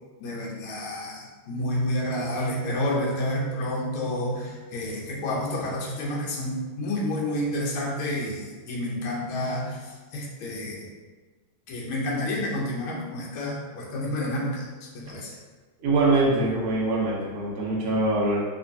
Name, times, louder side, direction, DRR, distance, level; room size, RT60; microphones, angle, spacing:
voice 1, 0.2-10.9 11.7-14.6 14.9-15.3, left 1 dB, 75° left, -3 dB, 1.6 m, -29 dB
voice 2, 15.8-18.4, right 2 dB, 55° right, -4 dB, 1.1 m, -23 dB
3.4 x 3.0 x 2.6 m, 1.3 s
omnidirectional pair, 2.3 m